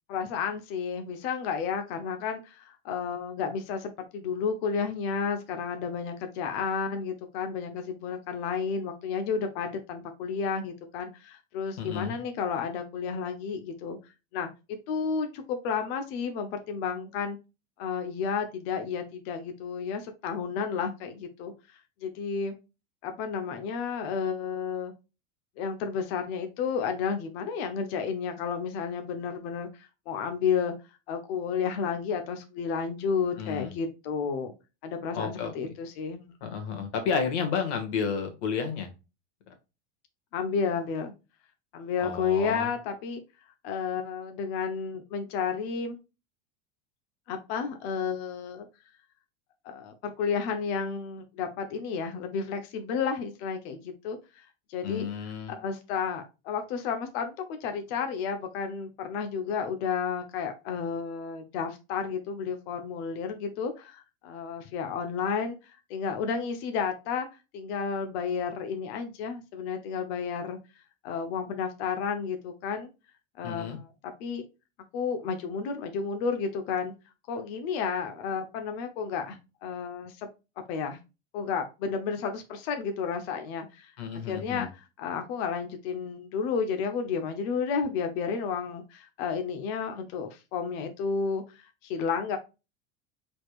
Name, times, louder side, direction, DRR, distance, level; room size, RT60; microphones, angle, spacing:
voice 1, 0.1-14.0 14.3-14.5 14.9-17.4 17.8-21.5 22.0-22.5 23.0-24.9 25.6-30.7 31.1-34.5 34.8-36.3 40.3-41.1 41.7-43.2 43.6-46.0 47.3-48.7 49.6-55.1 55.5-67.3 67.5-70.6 71.0-72.9 73.4-73.9 74.2-74.4 74.9-76.9 77.3-80.3 80.7-81.0 81.3-83.9 84.3-92.4, left 6 dB, 65° left, 1.1 m, -32 dB
voice 2, 11.8-12.2 33.4-33.7 35.1-35.7 36.4-38.9 42.0-42.7 54.8-55.5 73.4-73.8 84.0-84.7, left 6 dB, 85° left, 1.8 m, -31 dB
4.9 x 4.2 x 2.4 m
supercardioid pair, 145°, 33 cm